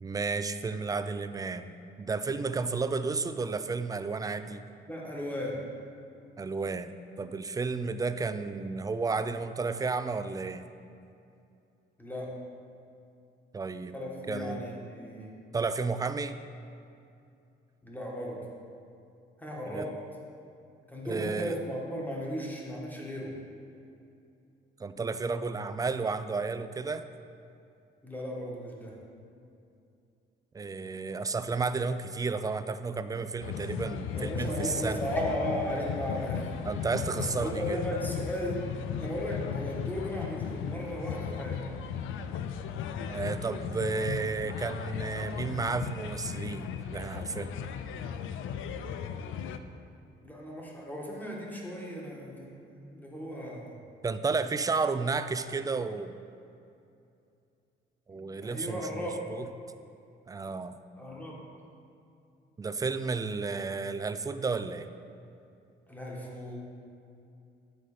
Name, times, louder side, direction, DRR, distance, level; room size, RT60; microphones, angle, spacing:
voice 1, 0.0-4.6 6.4-10.7 13.5-14.0 14.3-14.6 15.5-16.4 19.7-19.8 21.0-21.6 24.8-27.0 30.5-35.0 36.7-37.8 43.1-47.5 54.0-56.2 58.1-59.4 60.3-60.8 62.6-64.9, right 4 dB, 20° right, 11 dB, 0.3 m, -32 dB
voice 2, 2.3-2.6 4.8-5.6 12.0-12.3 13.9-15.3 17.8-18.4 19.4-20.0 20.9-23.4 28.0-29.0 34.1-36.5 37.1-38.6 39.0-41.7 50.2-53.8 58.1-59.2 61.0-61.4 65.9-66.6, equal, 10° left, -3 dB, 1.5 m, -36 dB
sound 1, 33.4-49.6, left 7 dB, 80° left, 0.4 m, -36 dB
9.5 x 3.9 x 5.0 m, 2.6 s
cardioid pair, 90°, 20 cm